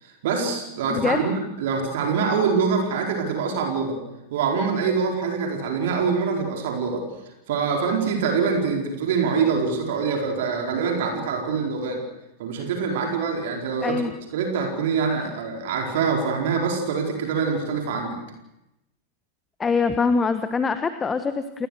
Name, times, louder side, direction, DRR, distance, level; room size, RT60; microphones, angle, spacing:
voice 1, 0.0-4.0 4.3-7.0 7.5-12.0 12.4-14.0 14.3-18.2, right 5 dB, 55° right, 1 dB, 4.6 m, -24 dB
voice 2, 13.8-14.1 19.6-21.7, left 4 dB, 15° left, 10 dB, 1.2 m, -23 dB
29.0 x 20.5 x 6.6 m, 0.90 s
figure-of-eight pair, 90°, 0 cm